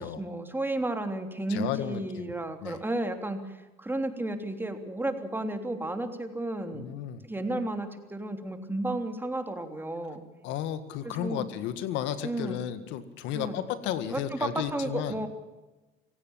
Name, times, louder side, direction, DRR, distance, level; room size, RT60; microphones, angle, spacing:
voice 1, 0.0-6.9 7.2-10.2 11.0-11.5 12.2-12.6 13.3-13.6 14.1-15.3, right 1 dB, 10° right, 6 dB, 3.3 m, -33 dB
voice 2, 1.5-2.3 2.6-2.8 6.7-7.2 10.4-15.2, left 10 dB, 75° left, 11 dB, 1.9 m, -33 dB
25.5 x 17.0 x 7.5 m, 1.1 s
supercardioid pair, 90°, 19 cm